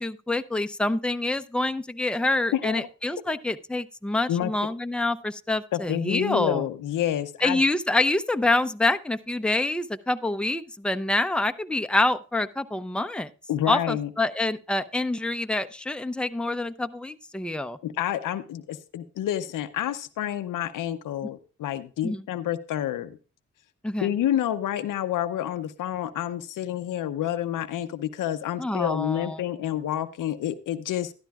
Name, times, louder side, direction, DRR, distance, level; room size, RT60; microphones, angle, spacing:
voice 1, 0.0-6.7 7.4-13.3 13.7-17.8 22.0-22.2 23.8-24.1 28.6-29.4, left 2 dB, 5° left, 10 dB, 0.6 m, -26 dB
voice 2, 2.5-2.9 4.3-4.5 5.7-7.6 13.5-14.1 17.8-23.2 24.0-31.1, left 11 dB, 90° left, 11 dB, 0.6 m, -29 dB
13.0 x 11.0 x 2.3 m, 0.34 s
supercardioid pair, 40°, 31 cm